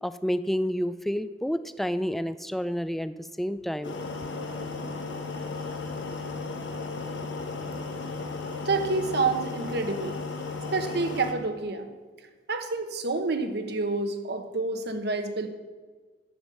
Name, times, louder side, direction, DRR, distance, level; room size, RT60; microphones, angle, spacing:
voice 1, 0.0-4.0, equal, ahead, 12 dB, 0.4 m, -29 dB
sound 1, 3.8-11.3, left 3 dB, 90° left, 1.2 m, -35 dB
voice 2, 8.6-10.2 10.7-11.9 12.5-15.5, right 3 dB, 65° right, 8 dB, 1.1 m, -28 dB
11.0 x 7.2 x 6.5 m, 1.4 s
head